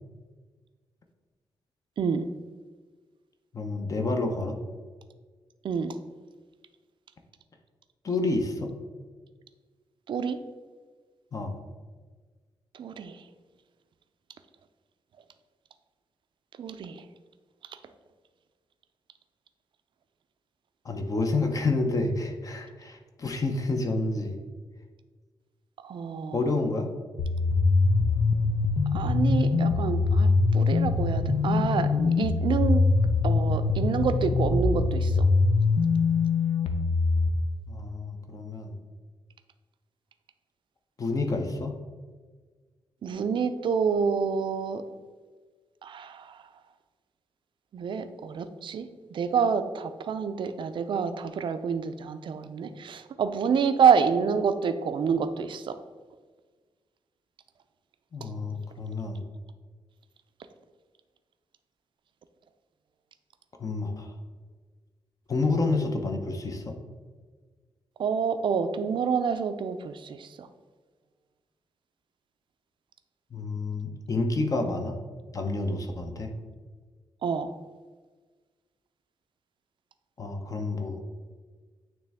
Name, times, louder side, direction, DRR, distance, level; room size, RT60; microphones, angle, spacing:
voice 1, 3.5-4.6 8.0-8.7 11.3-11.6 20.8-24.4 26.3-26.9 37.7-38.8 41.0-41.8 58.1-59.3 63.6-64.1 65.3-66.8 73.3-75.0 75.3-76.3 80.2-81.0, left 3 dB, 35° left, 4 dB, 0.6 m, -29 dB
voice 2, 5.6-6.0 10.1-10.4 12.8-13.2 16.6-17.0 25.8-26.4 28.9-32.9 33.2-35.3 43.0-44.8 45.8-46.3 47.7-55.8 58.2-58.3 68.0-70.5 77.2-77.5, right 6 dB, 55° right, 10 dB, 0.4 m, -27 dB
sound 1, 27.2-37.3, left 3 dB, 80° left, 0.6 m, -23 dB
8.9 x 3.2 x 3.5 m, 1.4 s
wide cardioid pair, 145°, 10 cm